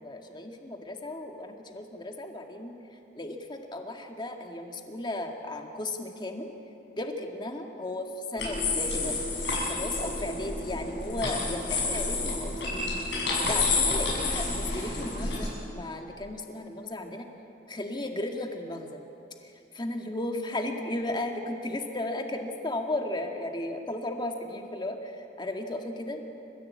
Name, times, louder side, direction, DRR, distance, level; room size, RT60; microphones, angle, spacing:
voice 1, 0.0-6.5 7.0-9.2 9.6-12.8 13.4-17.3 17.7-19.0 19.4-26.2, left 1 dB, 25° left, 3 dB, 2.0 m, -35 dB
sound 1, 8.4-15.5, left 3 dB, 85° left, 7.3 m, -29 dB
29.0 x 15.5 x 8.5 m, 2.9 s
head